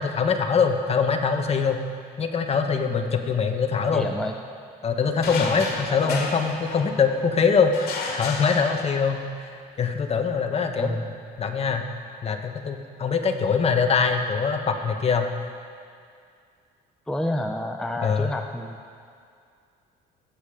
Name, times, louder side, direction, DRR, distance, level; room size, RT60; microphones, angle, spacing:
voice 1, 0.0-1.8 2.2-4.1 4.8-11.0 11.4-11.8 12.2-15.5 18.0-18.3, left 5 dB, 35° left, 5 dB, 1.3 m, -23 dB
voice 2, 3.9-4.3 5.4-5.6 5.9-6.2 10.8-11.1 17.1-18.8, left 1 dB, 5° left, 3 dB, 0.7 m, -29 dB
Metal Chair Smashed on Concrete in Basement, 5.2-7.2 7.7-9.3, left 4 dB, 65° left, 2.5 m, -32 dB
21.0 x 8.8 x 5.1 m, 2.3 s
cardioid pair, 110°, 17 cm